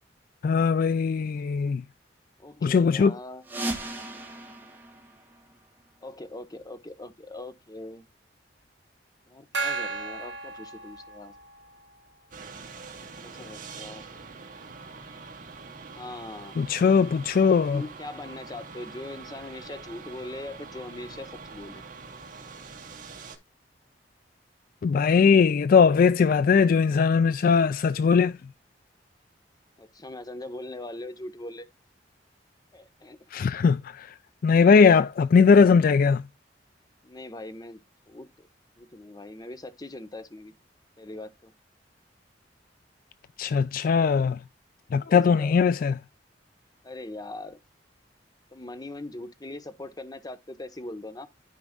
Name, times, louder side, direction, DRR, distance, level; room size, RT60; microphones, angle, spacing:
voice 1, 0.4-1.8 2.6-3.1 16.6-17.8 24.8-28.4 33.3-34.1 34.4-36.2 43.4-44.4 44.9-45.9, left 5 dB, 50° left, 0.3 m, -20 dB
voice 2, 2.4-3.4 6.0-8.0 9.3-11.3 13.0-14.0 16.0-16.6 17.6-21.8 29.8-31.7 32.7-33.2 37.0-37.8 38.1-38.5 38.8-40.5 41.0-41.5 45.1-45.8 46.8-47.6 48.5-51.3, left 2 dB, 20° left, 1.0 m, -41 dB
sound 1, 3.4-6.0, right 1 dB, 10° right, 2.1 m, -37 dB
Gong, 9.5-11.6, right 4 dB, 85° right, 2.4 m, -33 dB
sound 2, 12.3-23.4, right 4 dB, 50° right, 2.2 m, -44 dB
13.0 x 5.1 x 2.3 m
head